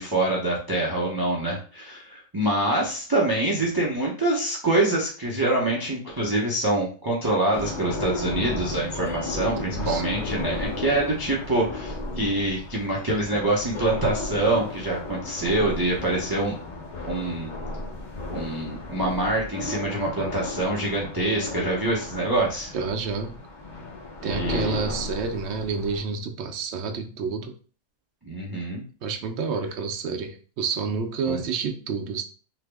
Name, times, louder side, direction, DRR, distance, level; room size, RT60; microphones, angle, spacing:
voice 1, 0.0-16.6 17.0-17.5 18.3-22.7 24.2-24.9 28.2-28.8 31.3-31.4, right 2 dB, 35° right, -4 dB, 0.3 m, -25 dB
sound 1, 7.5-26.0, left 2 dB, 45° left, 0.6 m, -34 dB
voice 2, 9.6-10.0 22.7-23.4 24.2-27.5 29.0-32.2, right 5 dB, 65° right, 4 dB, 0.7 m, -29 dB
3.4 x 2.0 x 3.3 m, 0.38 s
omnidirectional pair, 1.5 m